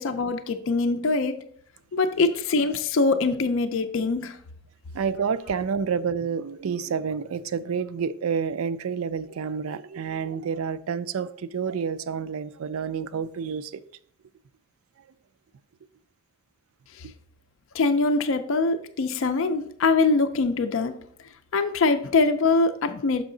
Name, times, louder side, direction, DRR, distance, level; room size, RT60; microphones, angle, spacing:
voice 1, 0.0-1.4 1.9-4.4 16.9-17.1 17.7-20.9 21.5-23.2, left 3 dB, 60° left, 0.4 m, -23 dB
voice 2, 4.9-13.8 17.0-17.1, right 6 dB, 70° right, 0.4 m, -29 dB
6.2 x 5.6 x 3.8 m
head